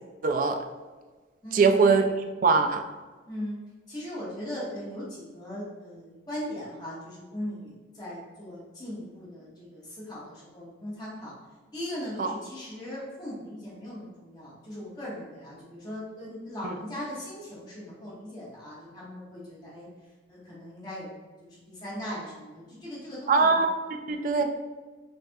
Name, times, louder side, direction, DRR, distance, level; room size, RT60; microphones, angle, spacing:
voice 1, 0.2-0.6 1.5-2.1 2.4-2.8 12.2-12.3 16.6-16.7 23.3-23.7 24.1-24.4, right 4 dB, 45° right, 6 dB, 0.3 m, -21 dB
voice 2, 1.4-2.0 3.3-3.6 3.9-11.3 11.7-19.9 20.3-21.1 21.4-23.6 24.4-24.5, equal, 20° left, -8 dB, 1.4 m, -39 dB
5.4 x 2.6 x 2.3 m, 1.3 s
head